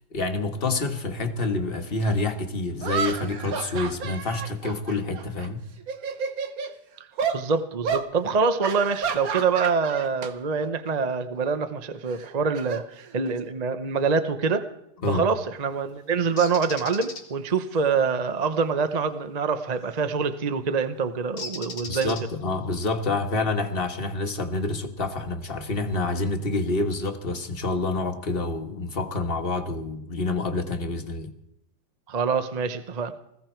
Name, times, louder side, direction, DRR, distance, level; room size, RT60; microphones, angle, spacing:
voice 1, 0.1-5.6 15.0-15.2 21.9-31.3, left 3 dB, 35° left, 1.6 m, -27 dB
sound 1, 2.0-2.1 2.8-5.5 5.8-6.7 7.2-7.4 7.8-8.1 8.6-10.3 10.6-10.9 12.1-13.5, right 6 dB, 60° right, 1.5 m, -31 dB
voice 2, 7.3-14.6 15.1-22.2 32.1-33.1, right 5 dB, 35° right, 0.7 m, -25 dB
Bird, 16.4-17.2 19.8-20.1 21.4-22.6, left 4 dB, 85° left, 2.9 m, -37 dB
20.5 x 15.5 x 4.5 m
omnidirectional pair, 1.9 m